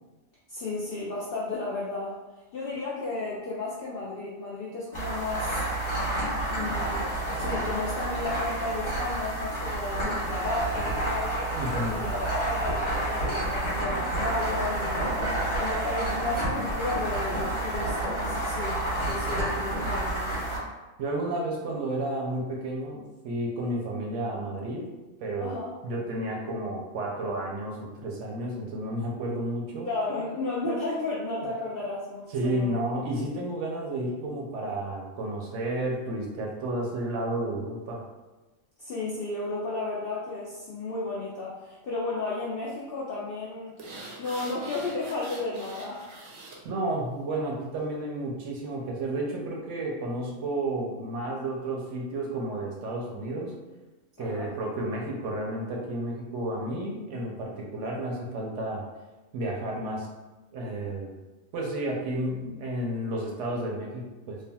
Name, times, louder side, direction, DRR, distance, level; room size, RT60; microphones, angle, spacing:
voice 1, 0.5-2.2 2.5-5.6 6.5-11.4 11.9-15.2 15.6-20.4 25.4-25.8 29.8-32.7 38.8-43.8 44.2-46.1 54.2-54.5, left 2 dB, 65° left, -7 dB, 0.5 m, -33 dB
sound 1, 4.9-20.6, right 1 dB, 25° left, 0.7 m, -29 dB
voice 2, 11.5-12.0 19.2-19.4 21.0-24.9 25.2-25.6 25.8-29.9 32.3-38.0 46.6-53.5 54.2-58.8 59.3-60.1 60.5-61.1 61.5-64.4, right 1 dB, 70° right, -2 dB, 0.8 m, -31 dB
sound 2, 43.8-46.6 47.0-47.1, right 2 dB, 85° right, 1.1 m, -43 dB
3.3 x 2.3 x 2.2 m, 1.1 s
omnidirectional pair, 1.4 m